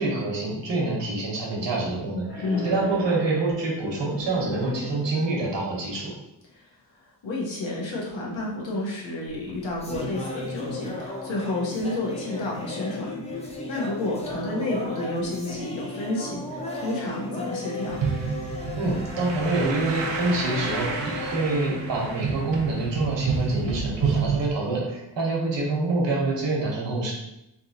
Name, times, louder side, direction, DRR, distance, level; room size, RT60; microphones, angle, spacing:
voice 1, 0.0-6.1 18.8-27.1, right 2 dB, 70° right, -2 dB, 1.1 m, -26 dB
sound 1, 2.3-5.6, left 2 dB, 55° left, 1.2 m, -36 dB
voice 2, 2.4-2.8 6.6-6.7 7.2-18.0, left 2 dB, 80° left, -3 dB, 1.1 m, -30 dB
sound 2, 9.3-22.7, left 2 dB, 15° left, 0.4 m, -35 dB
sound 3, 17.9-24.5, right 5 dB, 85° right, 0.7 m, -29 dB
3.4 x 2.8 x 2.7 m, 0.87 s
wide cardioid pair, 140°, 45 cm